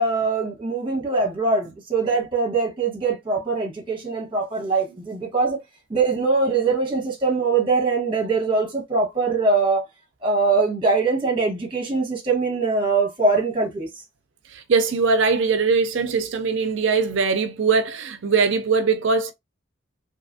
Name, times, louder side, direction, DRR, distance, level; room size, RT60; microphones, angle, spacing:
voice 1, 0.0-5.6 5.9-9.8 10.2-13.9, right 3 dB, 25° right, 1.2 m, -22 dB
voice 2, 14.5-19.3, right 4 dB, 75° right, 0.5 m, -21 dB
2.8 x 2.4 x 2.6 m
head